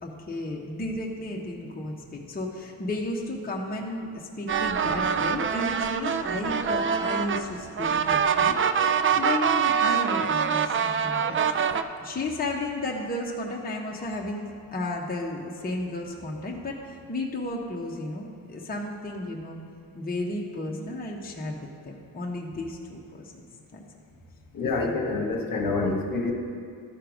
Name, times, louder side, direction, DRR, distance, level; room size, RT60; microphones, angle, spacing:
voice 1, 0.0-11.4 12.0-19.6 19.9-21.6 21.8-23.3 23.7-23.8 24.9-25.0 25.8-25.9, left 2 dB, 20° left, -1 dB, 1.1 m, -33 dB
sound 1, 4.5-11.8, right 7 dB, 30° right, 0.4 m, -25 dB
voice 2, 24.5-26.3, left 3 dB, 45° left, 2 dB, 1.3 m, -27 dB
12.5 x 4.5 x 5.1 m, 2.3 s
supercardioid pair, 65°, 46 cm